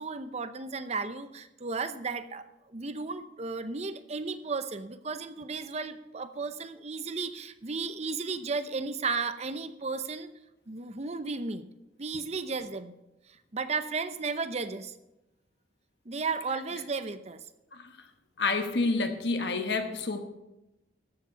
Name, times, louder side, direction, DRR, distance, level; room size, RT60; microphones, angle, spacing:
voice 1, 0.0-10.3 10.7-11.6 12.0-12.9 13.5-14.9 16.1-17.4, right 4 dB, 35° right, 11 dB, 0.7 m, -34 dB
voice 2, 18.4-20.2, left 3 dB, 65° left, 6 dB, 1.2 m, -28 dB
14.0 x 7.4 x 5.7 m, 0.95 s
head